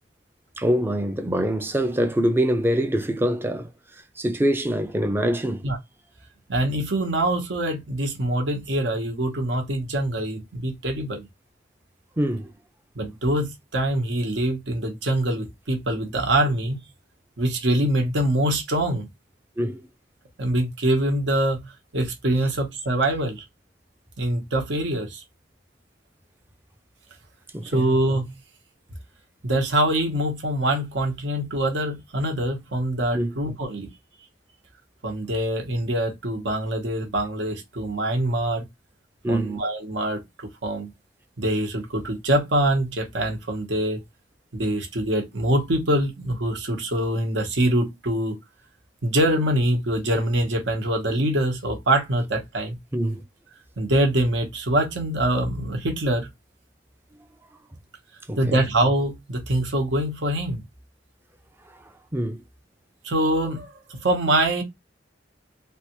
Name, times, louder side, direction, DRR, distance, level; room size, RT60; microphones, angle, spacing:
voice 1, 0.6-3.7 4.2-5.6 12.2-12.5 19.6-19.9 27.5-27.9 33.1-33.3 39.2-39.6 52.9-53.2 58.3-58.6 62.1-62.4, equal, 10° right, 0.4 m, -24 dB
voice 2, 6.5-11.3 12.9-16.8 17.4-19.1 20.4-23.4 24.2-25.2 27.6-28.3 29.4-33.9 35.0-38.6 39.3-40.9 41.4-44.0 44.5-48.4 49.0-52.8 53.8-56.3 58.4-60.6 63.0-64.6, right 1 dB, 75° right, 0.9 m, -24 dB
3.3 x 2.3 x 2.9 m
head